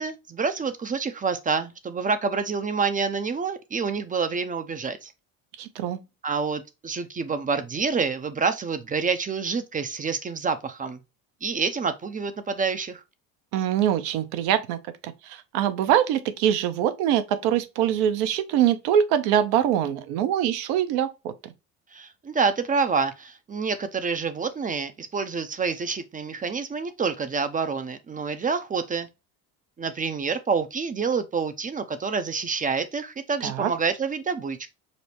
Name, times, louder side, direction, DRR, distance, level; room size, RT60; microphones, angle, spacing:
voice 1, 0.0-5.1 6.2-11.0 11.4-13.0 21.9-29.1 29.8-34.7, right 5 dB, 20° right, 0.5 m, -27 dB
voice 2, 5.6-6.0 13.5-21.3 33.4-33.7, right 10 dB, 65° right, 0.7 m, -24 dB
5.1 x 2.1 x 2.9 m
hypercardioid pair, 75°, 41 cm